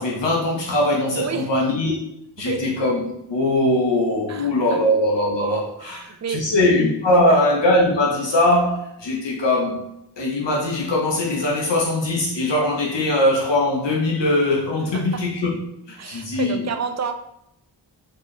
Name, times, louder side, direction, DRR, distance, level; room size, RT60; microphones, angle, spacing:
voice 1, 0.0-1.9 2.4-3.0 3.3-9.8 10.2-15.6 15.9-16.7, left 1 dB, 75° left, -3 dB, 1.0 m, -21 dB
voice 2, 1.2-1.5 2.4-2.6 4.3-4.8 5.8-6.4 7.3-7.4 14.9-15.2 16.0-17.1, right 6 dB, 40° right, 7 dB, 0.5 m, -29 dB
4.5 x 3.0 x 3.2 m, 0.80 s
wide cardioid pair, 65°, 43 cm